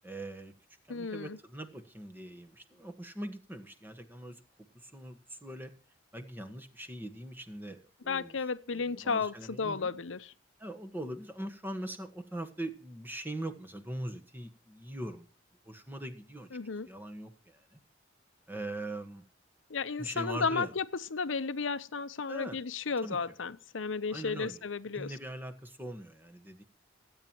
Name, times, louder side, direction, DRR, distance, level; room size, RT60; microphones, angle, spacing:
voice 1, 0.0-0.5 0.9-4.4 4.8-5.7 6.1-8.4 8.7-9.9 10.6-15.3 15.7-16.5 16.9-17.6 18.5-19.2 20.0-20.7 22.3-22.6 23.0-23.2 24.1-24.6 24.9-26.6, right 1 dB, 10° right, 1.4 m, -41 dB
voice 2, 0.9-1.4 8.1-10.3 16.5-16.9 19.7-25.1, left 4 dB, 80° left, 0.8 m, -33 dB
26.0 x 8.9 x 3.0 m
head